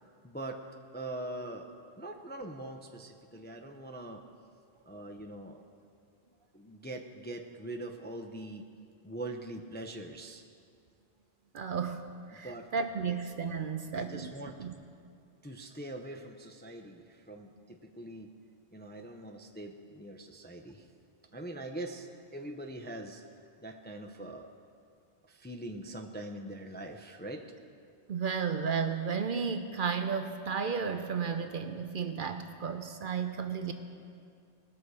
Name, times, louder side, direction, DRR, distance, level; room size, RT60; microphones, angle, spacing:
voice 1, 0.2-0.6 0.9-4.2 4.9-5.6 6.5-8.6 9.0-10.4 12.4-12.7 13.1-13.2 13.9-14.5 15.4-18.3 18.7-20.9 21.3-23.2 23.6-24.5 25.3-27.4, right 1 dB, 15° left, 2 dB, 0.4 m, -42 dB
voice 2, 11.5-14.3 14.6-14.7 28.1-33.7, right 6 dB, 55° right, 7 dB, 0.7 m, -33 dB
19.5 x 6.5 x 4.8 m, 2.4 s
omnidirectional pair, 1.1 m